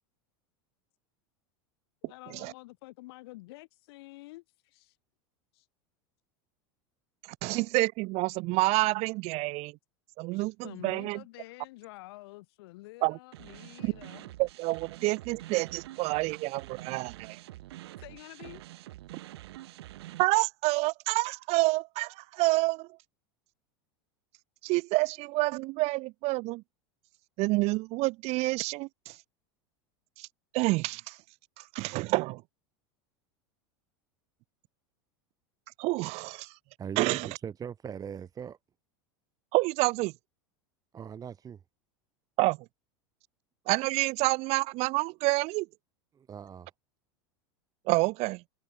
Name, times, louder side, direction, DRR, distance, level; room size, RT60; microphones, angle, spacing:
voice 1, 2.0-5.0 5.5-5.6 10.3-14.3 18.0-18.6, left 21 dB, 70° left, 2.8 m, -48 dB
voice 2, 7.4-9.8 10.2-11.2 13.0-13.2 13.8-13.9 14.4-17.4 20.2-22.9 24.6-26.6 27.4-29.1 30.2-30.3 30.5-31.2 31.7-32.4 35.8-36.5 37.0-37.3 39.5-40.1 42.4-42.6 43.7-45.7 47.9-48.4, right 23 dB, 50° right, 0.7 m, -28 dB
sound 1, 13.3-20.2, right 16 dB, 80° right, 1.4 m, -46 dB
voice 3, 36.8-38.6 40.9-41.6 46.1-46.7, right 8 dB, 25° right, 1.6 m, -40 dB
hypercardioid pair, 105°, 13 cm